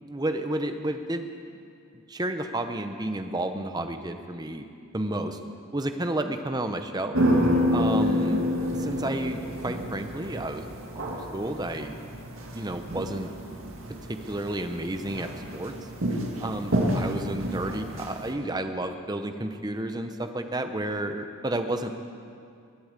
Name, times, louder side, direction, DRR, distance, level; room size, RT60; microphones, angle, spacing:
voice 1, 0.0-1.3 1.9-4.7 4.9-5.4 5.7-7.2 7.7-10.6 10.9-12.0 12.5-13.3 14.1-15.7 16.4-21.9, right 1 dB, 20° right, 7 dB, 0.8 m, -31 dB
sound 1, 7.1-18.3, equal, 65° right, 2.1 m, -29 dB
20.5 x 8.6 x 8.1 m, 2.4 s
head